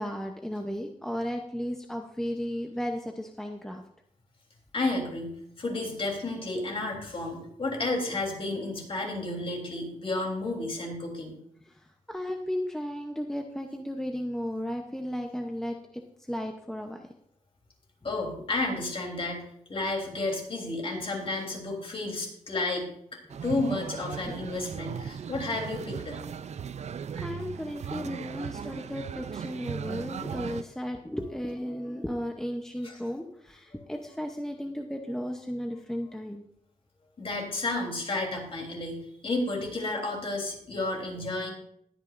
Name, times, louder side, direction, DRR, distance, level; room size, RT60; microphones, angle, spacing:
voice 1, 0.0-3.8 11.7-15.8 16.2-17.1 18.4-18.5 27.2-36.4, equal, 5° left, 3 dB, 0.8 m, -34 dB
voice 2, 4.7-11.4 18.0-22.9 23.4-26.2 32.8-33.0 33.7-33.8 37.2-41.5, left 2 dB, 45° left, 0 dB, 3.5 m, -32 dB
sound 1, 23.3-30.6, right 7 dB, 55° right, 0.5 m, -37 dB
20.0 x 9.0 x 2.6 m, 0.72 s
wide cardioid pair, 120°, 13 cm